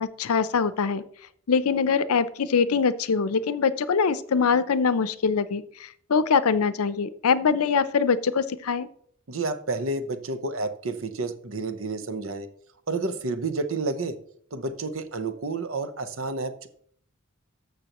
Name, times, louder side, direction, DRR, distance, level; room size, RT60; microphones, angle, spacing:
voice 1, 0.0-1.0 1.5-5.6 6.1-8.9, left 5 dB, 90° left, 14 dB, 0.6 m, -23 dB
voice 2, 9.3-12.5 12.9-14.2 14.5-16.7, right 3 dB, 65° right, 10 dB, 0.8 m, -30 dB
13.0 x 6.6 x 3.0 m, 0.62 s
head